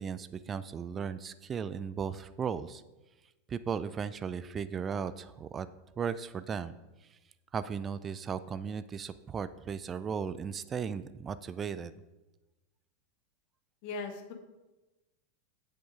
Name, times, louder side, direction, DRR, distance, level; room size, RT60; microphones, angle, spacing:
voice 1, 0.0-2.8 3.5-5.7 6.0-6.8 7.5-11.9, right 6 dB, 25° right, 14 dB, 0.4 m, -36 dB
voice 2, 13.8-14.3, left 3 dB, 55° left, 5 dB, 1.3 m, -38 dB
7.8 x 6.5 x 4.9 m, 1.1 s
figure-of-eight pair, 90°, 0 cm